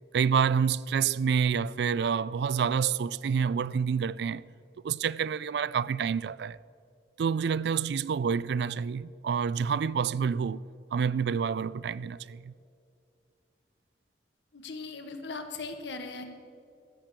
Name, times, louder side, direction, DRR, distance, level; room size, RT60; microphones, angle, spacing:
voice 1, 0.1-4.4 4.8-6.6 7.2-10.6 10.9-12.5, right 6 dB, 70° right, 0.3 m, -28 dB
voice 2, 14.5-16.2, left 3 dB, 80° left, 1.3 m, -39 dB
15.5 x 6.8 x 7.4 m
head